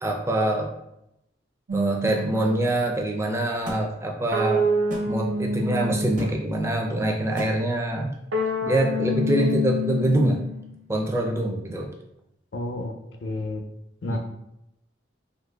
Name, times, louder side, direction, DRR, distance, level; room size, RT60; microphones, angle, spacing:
voice 1, 0.0-0.7 1.7-4.6 5.1-8.1 8.6-10.4 10.9-11.9 14.0-14.2, right 1 dB, 15° right, 1 dB, 0.4 m, -24 dB
sound 1, 1.7-2.8 4.3-6.7 8.3-10.7, equal, 80° right, 0.5 m, -27 dB
sound 2, 3.7-3.8 4.9-5.1 6.2-6.3 7.4-7.5, equal, 40° right, 0.8 m, -33 dB
voice 2, 12.5-12.9 13.2-13.6 14.0-14.2, left 2 dB, 65° left, 3 dB, 0.5 m, -30 dB
3.9 x 2.7 x 2.2 m, 0.85 s
head